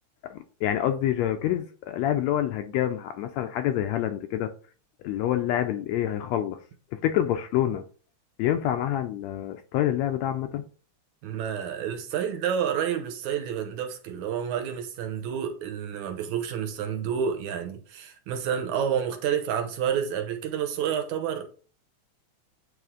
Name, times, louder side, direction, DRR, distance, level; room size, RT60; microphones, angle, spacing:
voice 1, 0.3-4.5 5.0-6.6 6.9-7.8 8.4-10.6, left 11 dB, 80° left, 1.6 m, -27 dB
voice 2, 11.2-21.5, right 8 dB, 75° right, 2.3 m, -29 dB
9.1 x 3.3 x 3.7 m
omnidirectional pair, 3.4 m